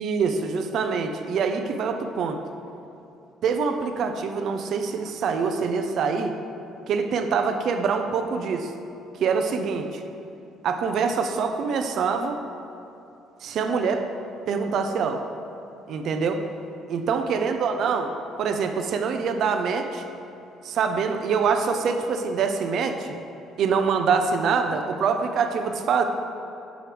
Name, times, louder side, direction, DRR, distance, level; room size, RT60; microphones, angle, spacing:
voice 1, 0.0-2.4 3.4-6.4 6.9-8.7 9.2-10.0 10.6-12.4 13.4-14.1 14.5-15.2 15.9-16.4 16.9-18.1 18.4-20.0 20.6-23.1 23.6-26.0, right 5 dB, 55° right, 6 dB, 0.7 m, -25 dB
15.5 x 6.2 x 3.4 m, 2.8 s
cardioid pair, 165°, 0 cm